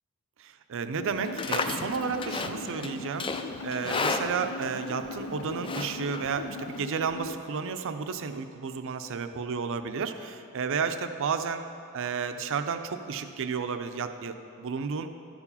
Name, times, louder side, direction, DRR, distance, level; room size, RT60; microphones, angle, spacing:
voice 1, 0.4-11.7 11.9-15.1, right 5 dB, 60° right, 9 dB, 0.5 m, -32 dB
sound 1, 1.0-7.3, left 2 dB, 85° left, 0.6 m, -40 dB
Livestock farm animals working animals, 1.1-6.8, left 3 dB, 25° left, 0.4 m, -34 dB
12.0 x 4.8 x 5.4 m, 2.6 s
head